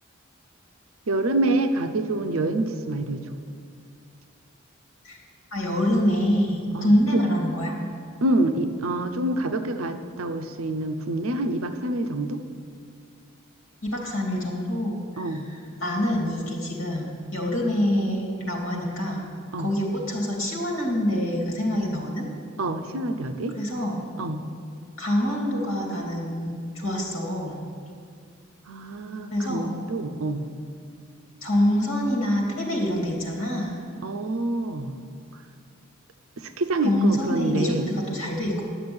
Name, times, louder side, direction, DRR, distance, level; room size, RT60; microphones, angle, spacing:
voice 1, 1.1-3.3 6.7-7.2 8.2-12.4 15.2-15.5 19.5-19.7 22.6-23.6 24.2-24.4 28.7-30.4 34.0-35.0 35.3-35.4 36.4-37.9, right 2 dB, 75° right, 7 dB, 0.7 m, -27 dB
voice 2, 5.5-7.8 13.8-15.2 15.8-19.3 19.6-22.3 23.5-24.1 25.0-27.6 29.3-29.8 31.4-33.8 36.8-38.6, equal, 65° left, -1 dB, 2.6 m, -25 dB
10.0 x 6.7 x 8.7 m, 2.2 s
head